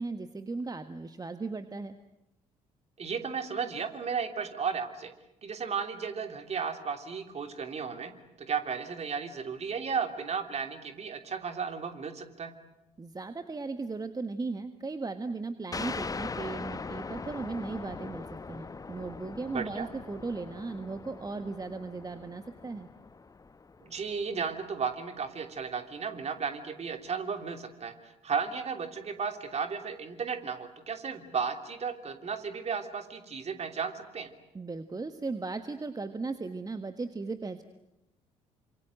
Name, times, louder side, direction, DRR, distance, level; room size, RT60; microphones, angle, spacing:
voice 1, 0.0-2.0 13.0-22.9 34.5-37.6, right 3 dB, 20° right, 10 dB, 1.5 m, -37 dB
voice 2, 3.0-5.1 5.4-8.1 8.4-12.5 19.5-19.9 23.8-34.3, right 6 dB, 40° right, 6 dB, 3.1 m, -34 dB
sound 1, 15.7-24.9, left 4 dB, 20° left, 1.0 m, -41 dB
28.5 x 26.0 x 7.8 m, 0.91 s
figure-of-eight pair, 45°, 18 cm